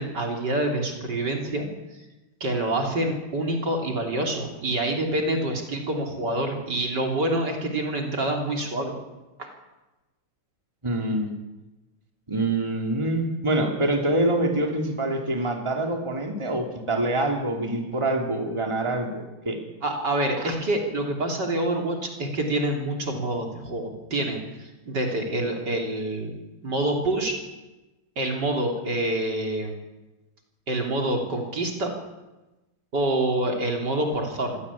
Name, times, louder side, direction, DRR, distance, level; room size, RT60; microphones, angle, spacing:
voice 1, 0.0-1.7 2.4-8.9 9.4-9.5 19.8-26.3 26.6-27.4 28.2-29.8 30.7-31.9 32.9-34.6, right 1 dB, 50° right, 2 dB, 3.8 m, -26 dB
voice 2, 10.8-11.3 12.3-19.6, right 1 dB, 15° right, 2 dB, 2.9 m, -25 dB
24.5 x 16.5 x 8.5 m, 1.1 s
omnidirectional pair, 2.3 m